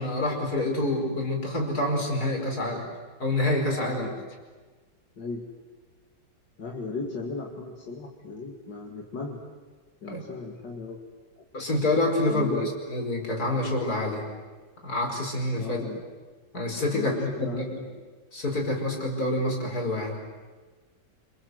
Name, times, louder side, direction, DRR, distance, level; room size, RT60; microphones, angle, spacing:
voice 1, 0.0-2.9 3.2-4.1 10.1-10.2 11.5-12.6 12.9-14.2 14.8-15.8 16.5-17.8 18.3-20.2, left 1 dB, 60° left, 1 dB, 5.5 m, -27 dB
voice 2, 5.2-5.6 6.6-9.4 10.0-11.0 12.3-12.7 15.6-16.0 16.9-17.8, left 3 dB, 80° left, 0 dB, 2.9 m, -36 dB
27.5 x 26.5 x 8.0 m, 1.4 s
omnidirectional pair, 1.9 m